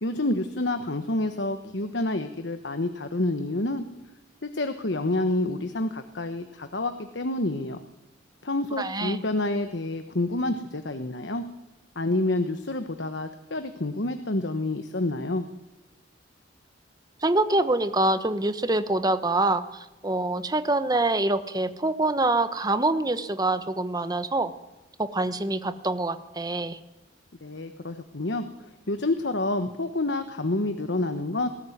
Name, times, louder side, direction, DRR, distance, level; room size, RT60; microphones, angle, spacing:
voice 1, 0.0-3.8 4.4-7.8 8.4-11.4 11.9-15.5 27.4-31.5, left 2 dB, 65° left, 8 dB, 1.3 m, -28 dB
voice 2, 8.8-9.2 17.2-24.5 25.0-26.8, right 2 dB, 20° right, 11 dB, 1.2 m, -25 dB
19.5 x 17.0 x 9.4 m, 1.0 s
head